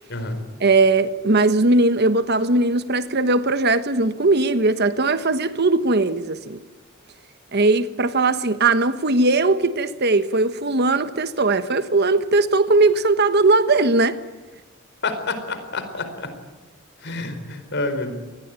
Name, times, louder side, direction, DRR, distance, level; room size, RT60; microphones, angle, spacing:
voice 1, 0.6-6.6 7.5-14.2, right 3 dB, 50° right, 1.3 m, -19 dB
voice 2, 15.0-16.3 17.0-18.1, left 3 dB, 55° left, 4.5 m, -28 dB
27.0 x 20.0 x 9.0 m
head